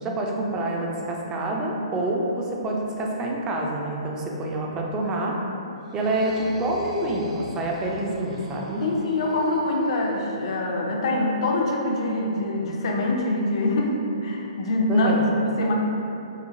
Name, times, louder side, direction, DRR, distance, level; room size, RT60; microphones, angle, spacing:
voice 1, 0.0-5.4 5.9-8.8 14.9-15.3, right 1 dB, 20° right, -1 dB, 0.3 m, -27 dB
sound 1, 5.8-10.6, right 1 dB, 80° right, 0.7 m, -40 dB
voice 2, 8.8-15.7, left 1 dB, 55° left, -1 dB, 0.4 m, -24 dB
3.1 x 2.1 x 2.5 m, 2.7 s
hypercardioid pair, 130°, 3 cm